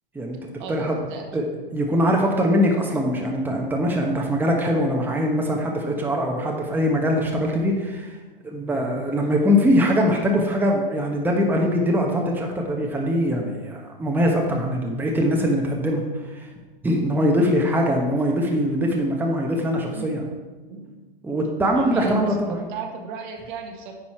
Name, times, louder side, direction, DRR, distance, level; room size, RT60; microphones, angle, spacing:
voice 1, 0.6-1.3 19.9-20.2 20.7-20.9 21.7-23.9, right 5 dB, 55° right, 3 dB, 1.5 m, -34 dB
voice 2, 1.7-8.2 8.4-16.5 16.8-20.3 21.2-22.6, equal, 5° right, 0 dB, 1.2 m, -22 dB
9.6 x 5.6 x 4.5 m, 1.3 s
hypercardioid pair, 105°, 29 cm